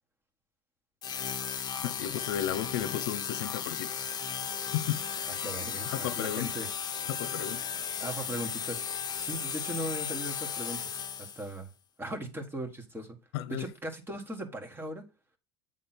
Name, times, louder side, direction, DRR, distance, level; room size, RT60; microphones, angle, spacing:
sound 1, 1.0-11.6, left 7 dB, 30° left, 1.0 m, -35 dB
voice 1, 1.8-4.1 4.7-5.0 5.9-6.5 7.1-7.7 13.3-13.7, left 11 dB, 80° left, 0.7 m, -34 dB
voice 2, 5.3-6.7 8.0-11.7 12.0-13.2 13.5-15.0, right 1 dB, 15° right, 1.8 m, -39 dB
8.5 x 3.6 x 4.4 m
supercardioid pair, 115°, 13 cm